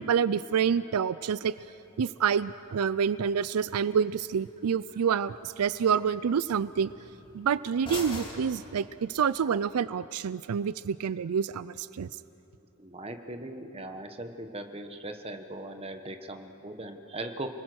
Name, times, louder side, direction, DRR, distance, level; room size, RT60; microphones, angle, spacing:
voice 1, 0.0-1.5 2.0-6.9 7.3-12.1, right 7 dB, 85° right, 16 dB, 0.4 m, -27 dB
sound 1, 1.4-9.4, left 1 dB, 20° left, 3.5 m, -47 dB
voice 2, 12.8-17.5, right 1 dB, 25° right, 6 dB, 1.3 m, -39 dB
29.5 x 21.0 x 6.3 m, 2.8 s
head